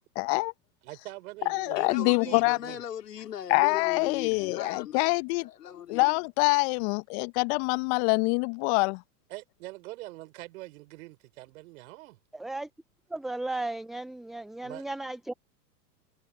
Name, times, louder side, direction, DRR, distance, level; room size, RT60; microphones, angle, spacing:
voice 1, 0.2-0.5 1.5-2.6 3.5-5.4 5.9-9.0, left 30 dB, 45° left, 1.1 m, -25 dB
voice 2, 0.8-2.8 9.3-12.2 14.6-14.8, right 19 dB, 55° right, 4.4 m, -43 dB
voice 3, 1.7-5.2 5.4-6.2, left 10 dB, 75° left, 4.3 m, -38 dB
voice 4, 12.3-12.7 13.1-15.3, right 2 dB, ahead, 0.3 m, -35 dB
hypercardioid pair, 105°, 48 cm